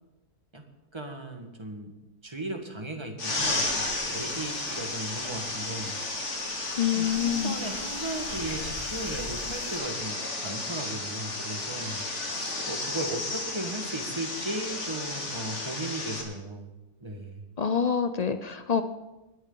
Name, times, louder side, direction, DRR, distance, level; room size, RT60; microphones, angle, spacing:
voice 1, 0.9-1.9 2.2-6.0 6.9-16.7 17.0-17.4, right 2 dB, 20° right, 4 dB, 1.6 m, -36 dB
sound 1, 3.2-16.2, left 2 dB, 50° left, 2.5 m, -33 dB
sound 2, 3.4-9.8, right 1 dB, 60° right, 2.1 m, -48 dB
voice 2, 6.8-7.6 17.6-18.8, left 7 dB, 65° left, 9 dB, 0.4 m, -26 dB
20.5 x 11.0 x 3.9 m, 1.0 s
omnidirectional pair, 1.6 m